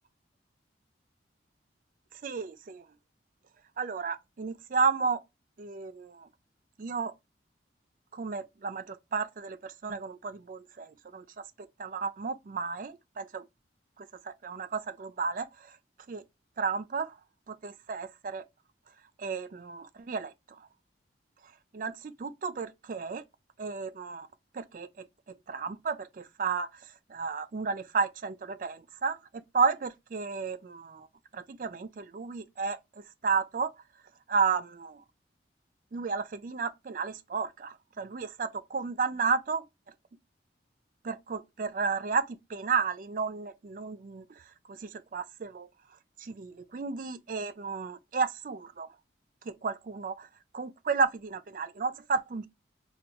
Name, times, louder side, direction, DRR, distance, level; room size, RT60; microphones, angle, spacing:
voice 1, 2.2-2.8 3.8-5.2 5.6-6.3 6.8-7.1 8.1-11.2 11.8-13.4 14.3-15.5 16.1-16.2 16.6-17.1 17.5-18.4 19.2-20.3 21.7-23.2 23.6-24.3 24.5-24.9 25.5-26.7 27.1-29.2 29.5-31.1 31.3-32.8 33.2-33.7 34.3-35.0 35.9-39.6 41.0-42.2 42.5-44.2 44.7-45.7 46.2-48.9 49.5-50.3 50.5-52.5, right 5 dB, 45° right, 0.4 m, -32 dB
4.5 x 2.3 x 2.8 m
head